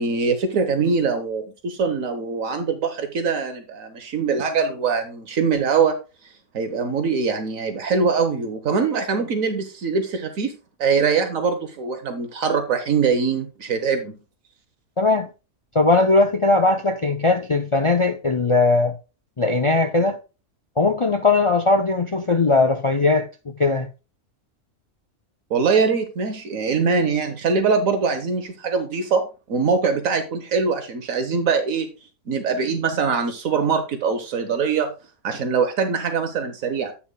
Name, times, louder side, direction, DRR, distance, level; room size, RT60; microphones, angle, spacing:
voice 1, 0.0-5.9 6.5-14.2 25.5-31.9 32.3-34.9 35.2-36.9, right 5 dB, 75° right, 1.4 m, -23 dB
voice 2, 15.0-15.3 15.7-18.9 19.4-20.2 20.8-23.3 23.6-23.9, left 3 dB, 55° left, 0.3 m, -19 dB
10.0 x 8.3 x 2.2 m
omnidirectional pair, 1.4 m